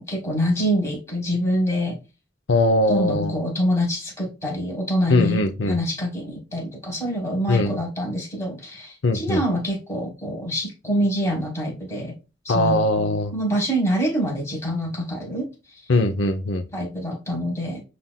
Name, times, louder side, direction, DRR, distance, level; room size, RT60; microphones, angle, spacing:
voice 1, 0.0-2.0 2.9-5.4 5.7-12.1 12.5-12.8 13.3-15.5 16.7-17.8, equal, 15° left, 1.4 m, -25 dB
voice 2, 2.5-3.3 5.1-5.8 7.5-7.8 9.0-9.4 12.5-13.3 15.9-16.7, left 2 dB, 75° left, 0.6 m, -21 dB
7.1 x 2.5 x 2.2 m
head